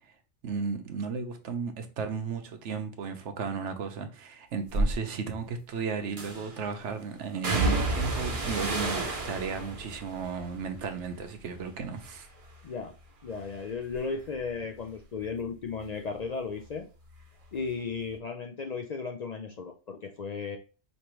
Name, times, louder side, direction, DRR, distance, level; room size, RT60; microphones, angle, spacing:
voice 1, 0.4-12.3, right 5 dB, 85° right, 1.1 m, -34 dB
sound 1, 4.7-4.9 6.2-6.6 7.4-11.7 12.0-12.6 13.0-16.3 16.5-17.7 18.0-18.1, right 2 dB, 35° right, 0.8 m, -32 dB
voice 2, 12.6-13.0 13.2-16.8 17.5-20.6, left 5 dB, 55° left, 0.4 m, -35 dB
5.3 x 2.9 x 3.0 m
omnidirectional pair, 1.2 m